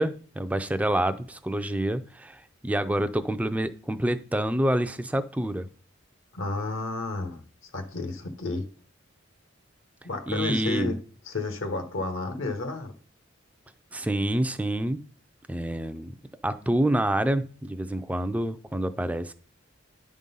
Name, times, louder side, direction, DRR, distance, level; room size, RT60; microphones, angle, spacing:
voice 1, 0.0-5.7 10.3-11.0 13.9-15.0 15.5-16.1 16.4-19.3, right 1 dB, 5° right, 0.3 m, -27 dB
voice 2, 6.3-7.4 7.7-8.6 10.0-11.0 11.3-12.9, left 3 dB, 75° left, 1.0 m, -31 dB
10.0 x 3.7 x 5.4 m
head